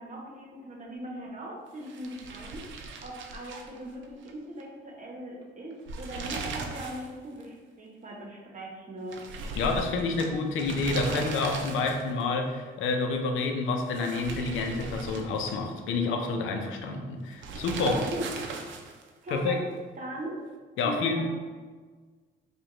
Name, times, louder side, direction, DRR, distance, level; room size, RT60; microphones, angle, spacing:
voice 1, 0.0-2.7 3.0-9.2 17.9-18.3 19.2-19.6 20.0-20.4 20.8-21.3, right 1 dB, 40° right, -2 dB, 1.0 m, -39 dB
sound 1, 1.8-4.3 4.6-4.7 5.7-7.1 7.4-7.5 9.1-12.2 13.8-15.8 17.4-19.1, right 3 dB, 70° right, 0.5 m, -38 dB
voice 2, 9.6-18.0 19.3-19.6 20.8-21.2, left 3 dB, 85° left, 3 dB, 0.6 m, -28 dB
4.8 x 2.4 x 3.0 m, 1.4 s
cardioid pair, 90°, 20 cm